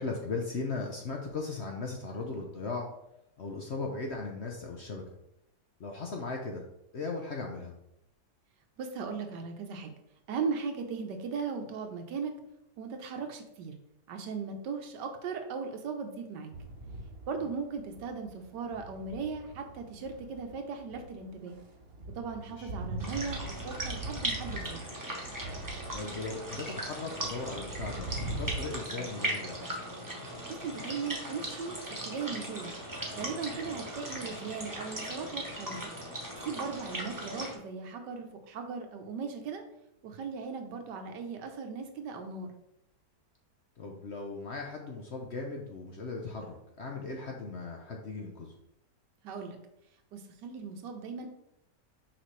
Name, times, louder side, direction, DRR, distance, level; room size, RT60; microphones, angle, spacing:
voice 1, 0.0-2.9 3.4-5.0 5.8-6.6 6.9-7.7 17.4-17.5 22.5-22.7 25.9-29.6 33.6-33.8 43.8-48.5, left 3 dB, 55° left, 1 dB, 0.8 m, -38 dB
voice 2, 8.8-9.9 10.3-12.3 12.8-13.7 14.1-16.5 17.3-21.6 22.1-24.9 30.5-31.8 32.0-32.8 33.1-35.9 36.4-39.6 40.0-42.5 49.2-49.6 50.1-51.3, right 5 dB, 85° right, 5 dB, 1.5 m, -38 dB
sound 1, 16.5-28.6, right 2 dB, 50° right, 0.8 m, -42 dB
sound 2, 23.0-37.6, right 1 dB, 15° right, 0.9 m, -38 dB
5.9 x 5.1 x 3.2 m, 0.81 s
omnidirectional pair, 1.8 m